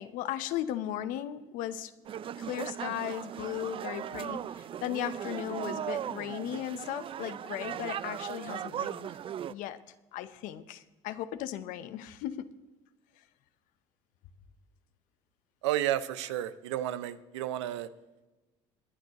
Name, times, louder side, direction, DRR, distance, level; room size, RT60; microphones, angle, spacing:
voice 1, 0.0-1.9 2.4-9.2 9.5-9.8 10.1-12.5, left 12 dB, 70° left, 13 dB, 0.7 m, -37 dB
sound 1, 2.1-9.5, right 9 dB, 40° right, 0.4 m, -38 dB
voice 2, 15.6-17.9, right 12 dB, 90° right, 15 dB, 0.6 m, -32 dB
21.0 x 9.5 x 2.9 m, 1.1 s
supercardioid pair, 75°, 14 cm